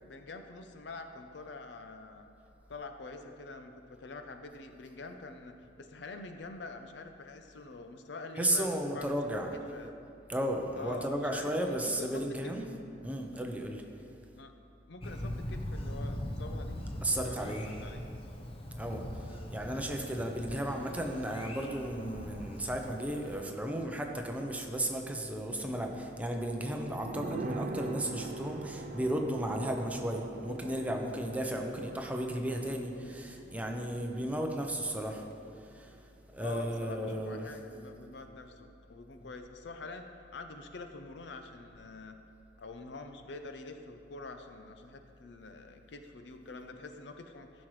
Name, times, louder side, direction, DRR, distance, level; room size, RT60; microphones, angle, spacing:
voice 1, 0.0-2.3 2.7-9.2 9.7-10.0 10.7-12.5 14.3-14.5 14.9-16.8 17.1-18.0 36.4-40.0 40.3-42.2 42.6-47.7, left 3 dB, 70° left, 6 dB, 0.6 m, -46 dB
voice 2, 8.4-9.5 10.3-12.7 13.0-13.8 17.0-17.7 18.8-19.0 19.5-35.2 35.7-35.9 36.3-37.5, right 1 dB, 10° right, 2 dB, 0.7 m, -34 dB
Thunder, 15.0-23.4, left 1 dB, 30° left, 0.8 m, -41 dB
sound 1, 26.9-36.2 36.5-36.6, right 3 dB, 45° right, 0.5 m, -43 dB
14.5 x 6.2 x 3.2 m, 2.6 s
head